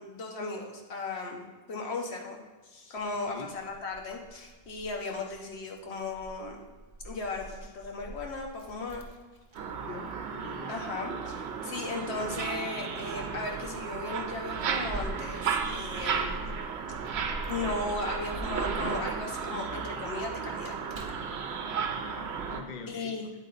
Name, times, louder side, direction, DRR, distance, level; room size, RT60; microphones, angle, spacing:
voice 1, 0.0-1.4 1.7-6.6 7.0-9.1 10.7-16.3 17.5-20.7 22.9-23.3, left 3 dB, 80° left, 1 dB, 1.3 m, -36 dB
Keys jangling, 3.0-22.0, right 1 dB, 30° right, 0.6 m, -46 dB
sound 1, 9.5-22.6, right 6 dB, 80° right, 0.9 m, -34 dB
voice 2, 9.8-10.8 22.0-23.3, left 4 dB, 55° left, 6 dB, 0.6 m, -44 dB
8.9 x 4.3 x 3.9 m, 1.3 s
omnidirectional pair, 1.1 m